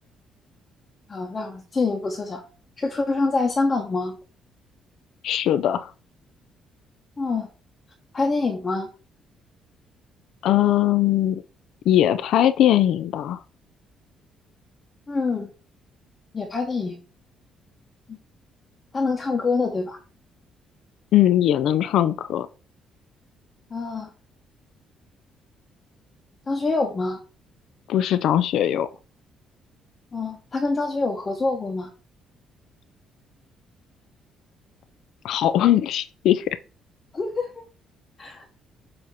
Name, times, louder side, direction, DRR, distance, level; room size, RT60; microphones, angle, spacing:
voice 1, 1.1-2.4 2.8-4.2 7.2-7.5 8.1-8.9 15.1-15.5 16.3-17.0 18.1-18.2 18.9-20.0 23.7-24.1 26.5-27.2 30.1-31.9 37.1-37.5 38.2-38.4, left 3 dB, 25° left, 1.0 m, -25 dB
voice 2, 5.2-5.9 10.4-11.4 11.9-13.4 21.1-22.5 27.9-28.9 35.2-36.6, left 11 dB, 70° left, 0.4 m, -20 dB
6.5 x 2.9 x 5.3 m
cardioid pair, 130°, 0 cm